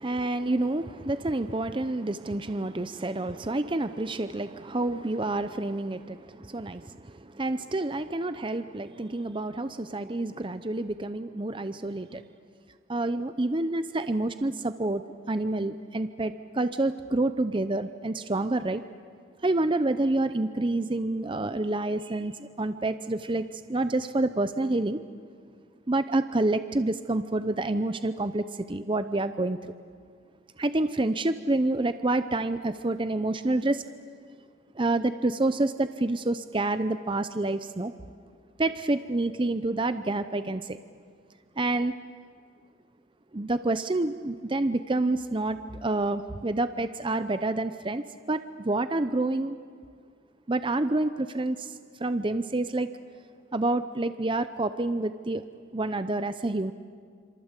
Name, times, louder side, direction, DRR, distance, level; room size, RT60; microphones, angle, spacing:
voice 1, 0.0-12.2 12.9-15.0 15.3-18.8 19.4-25.0 25.9-29.7 30.6-33.8 34.7-37.9 38.6-40.8 41.6-41.9 43.3-49.6 50.5-52.9 53.5-55.4 55.7-56.7, right 2 dB, 25° right, 11 dB, 0.6 m, -28 dB
27.0 x 26.5 x 8.2 m, 2.1 s
head